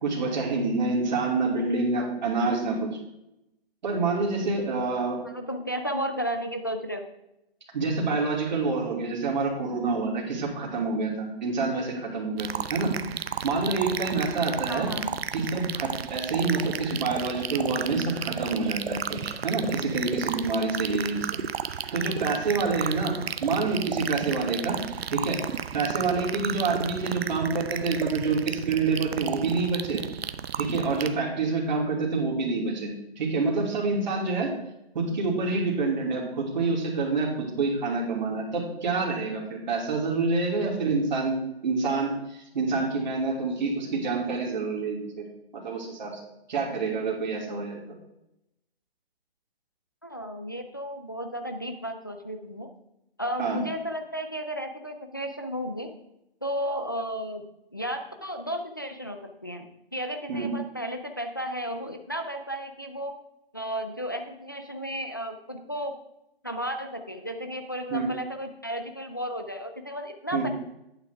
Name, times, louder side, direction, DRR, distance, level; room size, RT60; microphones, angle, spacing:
voice 1, 0.0-2.9 3.8-5.2 7.7-12.9 13.4-14.9 15.3-21.4 21.9-24.8 25.1-25.4 25.7-30.0 30.6-34.5 34.9-41.3 41.6-45.3 45.5-46.2 46.5-47.8 53.4-53.6 60.3-60.5 67.9-68.1 70.3-70.5, right 3 dB, 45° right, -2 dB, 2.9 m, -27 dB
voice 2, 5.3-7.0 14.7-15.2 50.0-52.7 53.2-55.9 56.4-63.1 63.5-65.9 66.4-70.5, equal, 20° left, 5 dB, 0.4 m, -33 dB
sound 1, 12.4-31.1, right 8 dB, 75° right, 0.7 m, -33 dB
11.0 x 8.9 x 3.4 m, 0.87 s
hypercardioid pair, 175°, 31 cm